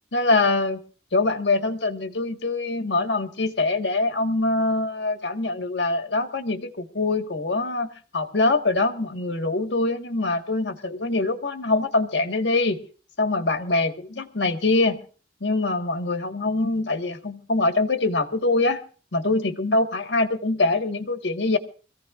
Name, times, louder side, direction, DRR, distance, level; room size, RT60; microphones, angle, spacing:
voice 1, 0.1-0.8 1.1-12.8 13.2-15.0 15.4-18.8 19.1-21.6, left 2 dB, 75° left, 1.6 m, -24 dB
25.0 x 15.5 x 2.5 m
head